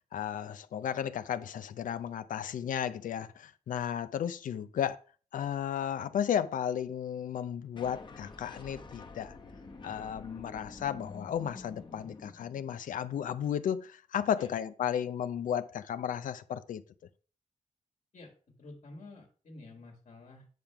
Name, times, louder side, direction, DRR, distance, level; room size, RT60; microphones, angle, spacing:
voice 1, 0.1-5.0 5.3-9.4 9.8-16.8, left 9 dB, 85° left, 0.5 m, -34 dB
sound 1, 7.8-12.9, left 3 dB, 35° left, 1.1 m, -48 dB
voice 2, 18.6-20.5, left 2 dB, 60° left, 2.0 m, -50 dB
9.3 x 3.5 x 5.8 m
cardioid pair, 90°, 13 cm